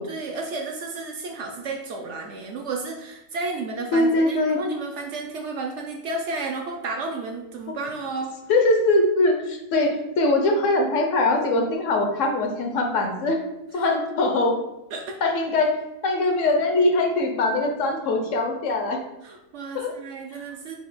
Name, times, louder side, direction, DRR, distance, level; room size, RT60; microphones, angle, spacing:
voice 1, 0.0-8.3 13.7-13.8 14.9-15.2 19.2-20.8, right 3 dB, 65° right, 1 dB, 0.8 m, -32 dB
voice 2, 3.9-4.6 8.5-13.4 13.7-14.6 15.2-15.7 16.0-19.0 19.7-19.9 20.3-20.4, left 2 dB, 65° left, 3 dB, 0.9 m, -22 dB
4.3 x 2.4 x 3.9 m, 0.90 s
omnidirectional pair, 1.5 m